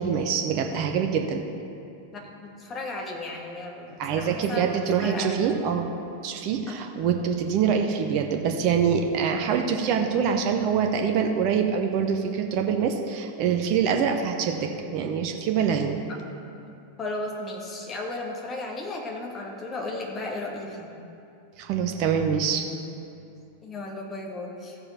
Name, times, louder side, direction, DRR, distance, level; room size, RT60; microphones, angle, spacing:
voice 1, 0.0-1.4 4.0-5.9 6.2-16.0 21.6-22.6, right 7 dB, 40° right, 4 dB, 0.8 m, -25 dB
voice 2, 2.1-4.7 5.0-5.3 6.7-6.8 16.2-16.4 17.0-20.9 23.6-24.8, left 2 dB, 25° left, 0 dB, 1.6 m, -35 dB
14.5 x 6.8 x 4.3 m, 2.7 s
figure-of-eight pair, 90°, 0 cm